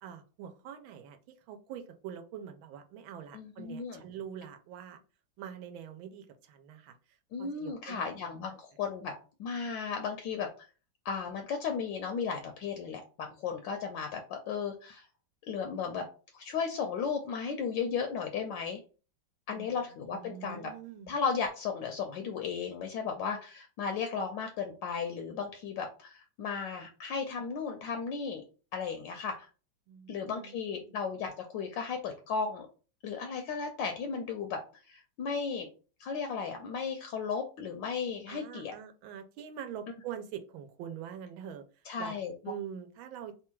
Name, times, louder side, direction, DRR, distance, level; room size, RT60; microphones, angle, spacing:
voice 1, 0.0-5.0 5.4-8.1 19.5-21.1 29.9-31.0 38.3-42.2 42.5-43.4, right 9 dB, 85° right, 7 dB, 1.4 m, -44 dB
voice 2, 3.3-4.0 7.3-9.1 9.4-10.5 11.0-15.0 15.5-16.0 16.3-18.8 19.5-20.7 21.1-28.4 28.7-29.5 30.1-32.7 33.0-35.7 36.0-38.7 41.9-42.3, left 6 dB, 75° left, 5 dB, 1.2 m, -35 dB
3.5 x 2.3 x 4.4 m, 0.36 s
omnidirectional pair, 2.2 m